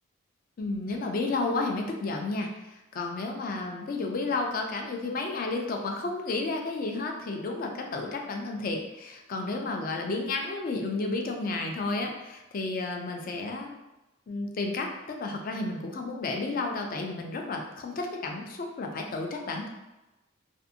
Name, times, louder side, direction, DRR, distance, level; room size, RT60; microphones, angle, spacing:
voice 1, 0.6-13.8 14.3-19.7, left 3 dB, 45° left, 2 dB, 0.4 m, -32 dB
2.5 x 2.5 x 2.5 m, 1.0 s
head